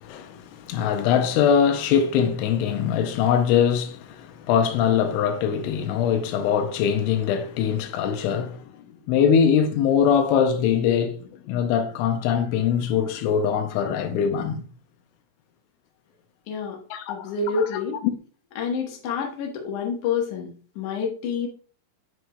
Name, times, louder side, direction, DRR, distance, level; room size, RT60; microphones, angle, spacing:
voice 1, 0.0-8.6 9.1-14.6 16.9-17.3 18.0-18.2, left 7 dB, 85° left, 3.1 m, -22 dB
voice 2, 16.5-16.8 17.1-18.0 18.6-21.5, left 5 dB, 70° left, 1.9 m, -28 dB
9.8 x 4.6 x 2.2 m
omnidirectional pair, 5.4 m